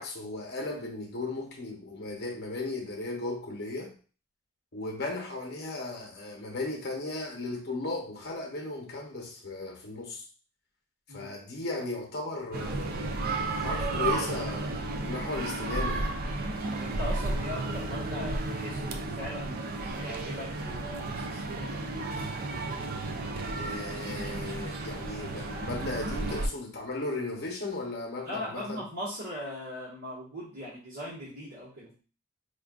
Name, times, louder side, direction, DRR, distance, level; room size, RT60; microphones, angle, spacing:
voice 1, 0.0-3.9 4.7-10.2 11.1-13.1 13.5-16.1 23.6-28.8, left 2 dB, 50° left, 0.8 m, -36 dB
sound 1, 12.5-26.5, right 2 dB, 40° right, 0.3 m, -33 dB
voice 2, 16.7-22.1 28.2-31.9, left 1 dB, 85° right, 1.5 m, -40 dB
4.5 x 2.4 x 2.4 m
head